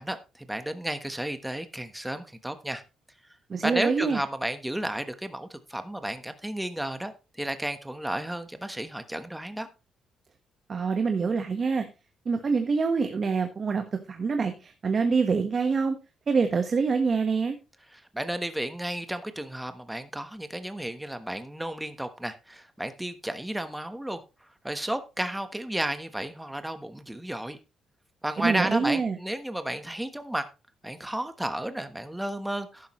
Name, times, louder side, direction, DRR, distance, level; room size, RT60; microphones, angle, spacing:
voice 1, 0.0-2.8 3.6-7.1 7.4-9.7 17.9-24.2 24.6-27.6 28.2-30.5 30.8-32.9, right 1 dB, 5° right, 1.2 m, -32 dB
voice 2, 3.5-4.2 10.7-11.8 12.2-15.9 16.3-17.6 28.4-29.2, right 5 dB, 40° right, 1.4 m, -25 dB
11.5 x 10.0 x 3.2 m
cardioid pair, 90°, 0 cm